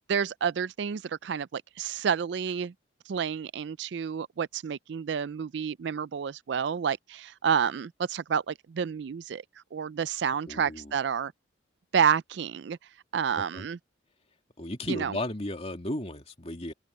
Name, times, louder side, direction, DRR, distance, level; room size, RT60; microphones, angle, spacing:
voice 1, 0.1-2.7 3.1-9.4 9.7-11.3 11.9-12.8 13.1-13.8 14.9-15.1, right 7 dB, 60° right, 0.4 m, -29 dB
voice 2, 10.5-10.9 13.4-13.7 14.6-16.7, left 1 dB, 35° left, 2.7 m, -35 dB
open air
head